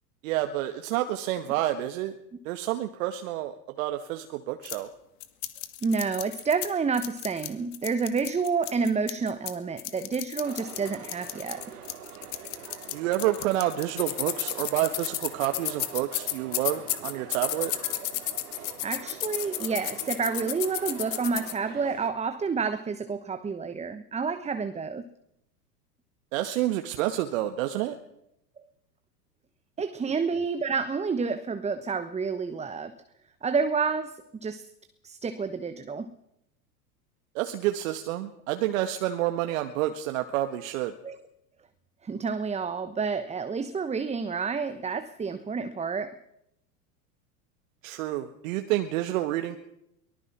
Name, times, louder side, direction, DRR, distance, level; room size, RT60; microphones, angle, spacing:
voice 1, 0.2-2.1 2.5-4.9 12.9-17.7 26.3-27.9 37.4-40.9 47.8-49.6, right 14 dB, 55° right, 1.8 m, -29 dB
sound 1, 4.6-4.8 5.2-6.7 6.9-9.5 9.8-21.5, left 15 dB, 45° left, 2.3 m, -33 dB
voice 2, 5.8-11.6 18.8-25.0 29.8-33.0 33.4-34.7 35.0-36.1 41.0-41.2 42.0-46.2, right 5 dB, 15° right, 1.2 m, -29 dB
sound 2, 10.4-22.1, right 8 dB, 75° right, 2.8 m, -44 dB
23.5 x 19.5 x 6.1 m
hypercardioid pair, 90°, 46 cm